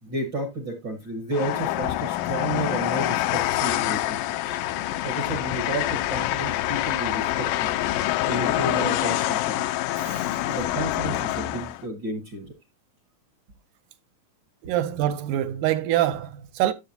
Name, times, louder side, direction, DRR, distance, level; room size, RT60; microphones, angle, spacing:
voice 1, 0.0-4.2 4.4-4.6 5.0-7.7 8.2-9.7 10.5-12.5, right 1 dB, 55° right, 1.3 m, -32 dB
Train, 1.3-11.8, left 15 dB, 80° left, 2.2 m, -26 dB
voice 2, 9.9-10.4 14.6-16.7, right 12 dB, 75° right, 1.9 m, -25 dB
11.0 x 6.8 x 2.7 m
omnidirectional pair, 4.0 m